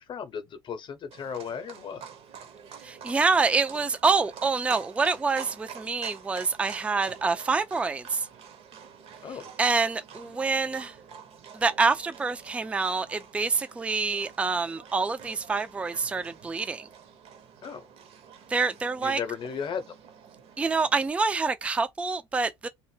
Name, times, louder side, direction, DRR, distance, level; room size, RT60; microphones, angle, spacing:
voice 1, 0.0-2.1 9.2-9.5 17.6-17.9 19.0-20.0, left 7 dB, 35° left, 0.7 m, -35 dB
Livestock farm animals working animals, 1.1-21.1, right 7 dB, 45° right, 0.7 m, -47 dB
voice 2, 2.8-8.3 9.6-10.9 11.5-16.9 18.5-19.2 20.6-22.7, right 4 dB, 10° right, 0.3 m, -26 dB
2.1 x 2.0 x 3.2 m
hypercardioid pair, 70°, 14 cm